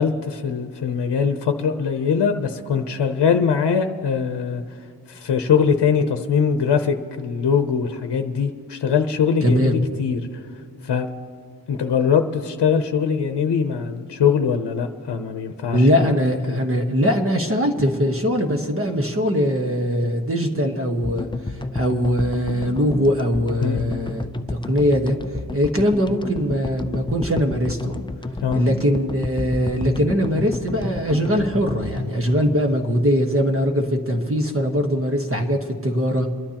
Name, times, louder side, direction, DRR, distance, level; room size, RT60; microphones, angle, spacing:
voice 1, 0.0-4.6 5.1-10.2 10.8-11.1 11.7-16.1 16.5-16.6 23.6-23.8 28.4-28.6, left 6 dB, 80° left, 7 dB, 0.8 m, -22 dB
voice 2, 9.4-9.8 15.7-25.1 25.5-28.0 28.5-36.3, equal, 35° right, 3 dB, 1.2 m, -21 dB
sound 1, 21.0-33.4, left 2 dB, 15° left, 0.4 m, -31 dB
27.5 x 12.0 x 2.9 m, 2.4 s
wide cardioid pair, 115°, 40 cm